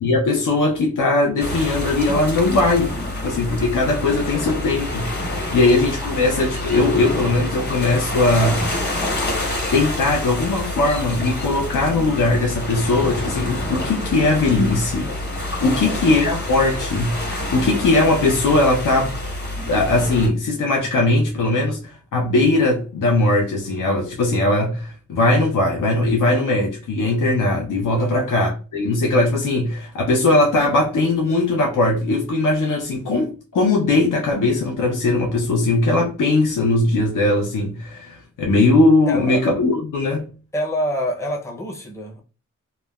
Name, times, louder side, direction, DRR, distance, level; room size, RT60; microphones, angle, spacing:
voice 1, 0.0-2.9 3.2-8.6 9.4-19.1 19.7-40.3, left 2 dB, 90° left, 0.5 m, -19 dB
sound 1, 1.4-20.3, left 1 dB, 35° left, 0.9 m, -27 dB
voice 2, 15.6-16.0 27.9-28.3 39.1-39.5 40.5-42.2, left 1 dB, 10° left, 0.5 m, -27 dB
3.0 x 2.1 x 2.2 m
wide cardioid pair, 110°, 30 cm